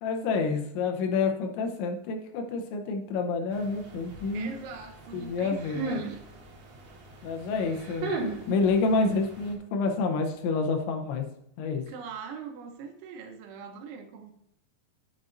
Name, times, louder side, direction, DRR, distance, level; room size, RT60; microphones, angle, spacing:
voice 1, 0.0-4.5 5.1-6.0 7.2-8.1 8.5-11.3 11.6-11.8, left 4 dB, 80° left, 4 dB, 3.1 m, -28 dB
sound 1, 3.5-9.5, right 3 dB, 60° right, 3.2 m, -38 dB
voice 2, 4.3-6.2 7.5-7.7 11.9-14.3, right 6 dB, 80° right, 5 dB, 3.2 m, -42 dB
9.6 x 7.8 x 2.6 m, 0.72 s
omnidirectional pair, 5.4 m